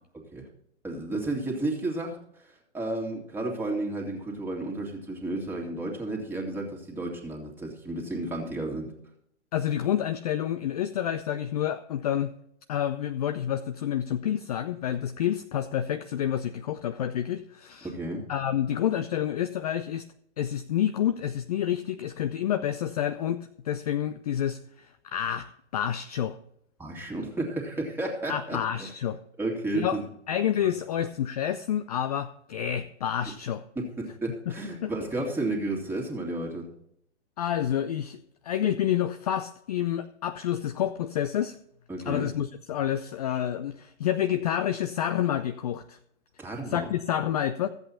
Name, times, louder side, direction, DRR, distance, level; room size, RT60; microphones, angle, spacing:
voice 1, 0.8-2.2 2.4-8.9 17.8-18.3 26.8-28.9 29.4-30.0 33.8-36.7 41.9-42.3 46.4-46.9, right 2 dB, 5° right, -1 dB, 2.3 m, -32 dB
voice 2, 9.5-12.3 12.7-17.9 18.3-20.0 20.4-26.4 28.3-29.2 29.7-30.0 30.3-33.6 34.5-34.6 34.8-34.9 37.4-38.2 38.4-41.6 42.1-46.0 46.7-47.7, left 10 dB, 35° left, 11 dB, 0.4 m, -29 dB
14.0 x 8.0 x 4.2 m, 0.73 s
figure-of-eight pair, 120°, 36 cm